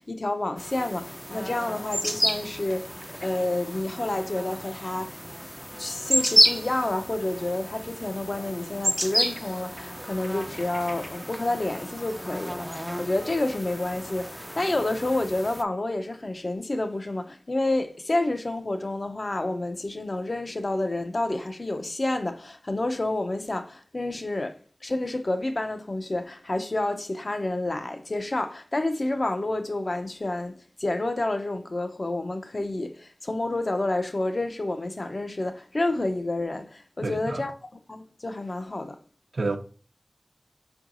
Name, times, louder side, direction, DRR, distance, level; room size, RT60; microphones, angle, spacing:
voice 1, 0.0-2.9 3.2-5.2 5.8-39.0, left 2 dB, 55° left, 0.6 m, -29 dB
sound 1, 0.6-15.6, equal, ahead, 0.4 m, -30 dB
voice 2, 37.0-37.5 39.3-39.6, right 3 dB, 80° right, 0.6 m, -29 dB
4.6 x 4.5 x 2.5 m
wide cardioid pair, 45°, 0 cm